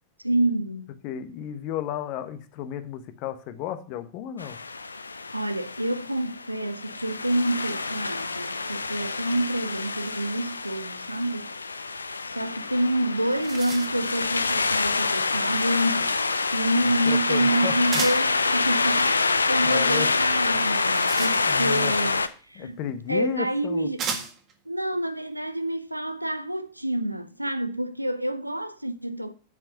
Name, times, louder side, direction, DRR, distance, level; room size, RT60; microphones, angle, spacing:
voice 1, 0.2-0.9 5.3-11.5 12.2-22.8 23.1-24.1 24.7-29.3, right 1 dB, 90° right, 0.6 m, -28 dB
voice 2, 1.0-4.6 17.0-17.7 19.6-20.1 21.4-21.9 22.6-23.9, left 10 dB, 45° left, 1.1 m, -33 dB
sound 1, 4.4-22.3, left 3 dB, 80° left, 0.6 m, -27 dB
sound 2, 13.3-14.1 17.9-18.4 20.6-21.8 22.9-23.0 24.0-24.5, right 6 dB, 30° right, 1.7 m, -34 dB
7.8 x 7.3 x 5.5 m
figure-of-eight pair, 90°, 0 cm